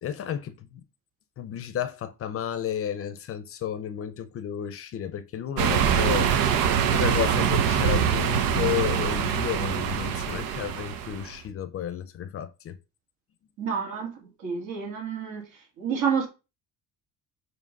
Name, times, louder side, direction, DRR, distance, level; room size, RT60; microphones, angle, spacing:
voice 1, 0.0-0.8 1.4-6.5 6.9-12.8, left 9 dB, 40° left, 0.6 m, -32 dB
sound 1, 5.6-11.3, right 8 dB, 80° right, 1.0 m, -24 dB
voice 2, 13.6-15.4 15.8-16.3, right 6 dB, 65° right, 2.7 m, -29 dB
7.5 x 3.1 x 5.3 m
cardioid pair, 165°, 34 cm